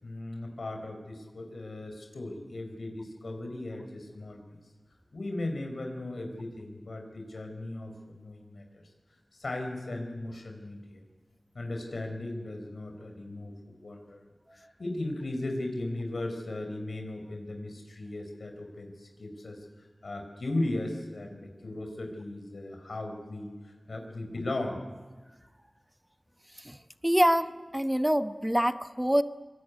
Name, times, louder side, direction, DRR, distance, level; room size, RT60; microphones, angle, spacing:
voice 1, 0.0-4.4 5.1-8.8 9.3-11.0 11.5-19.6 20.0-24.8, left 2 dB, 90° left, 3 dB, 4.8 m, -37 dB
voice 2, 27.0-29.2, equal, 10° right, 10 dB, 1.1 m, -25 dB
25.0 x 23.5 x 9.6 m, 1.3 s
wide cardioid pair, 55°, 0 cm